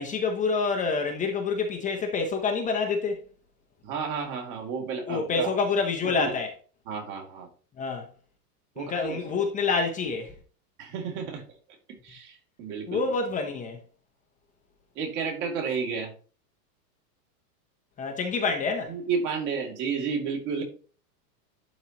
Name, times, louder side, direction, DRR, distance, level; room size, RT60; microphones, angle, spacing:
voice 1, 0.0-3.2 5.1-6.5 7.8-8.1 8.8-10.3 12.9-13.8 18.0-19.0, left 4 dB, 15° left, 0.7 m, -27 dB
voice 2, 3.8-5.5 6.0-6.3 6.9-7.5 8.7-9.3 10.8-11.4 12.0-13.0 14.9-16.1 18.9-20.6, right 6 dB, 40° right, 2.6 m, -31 dB
11.5 x 4.0 x 3.0 m
supercardioid pair, 145°, 48 cm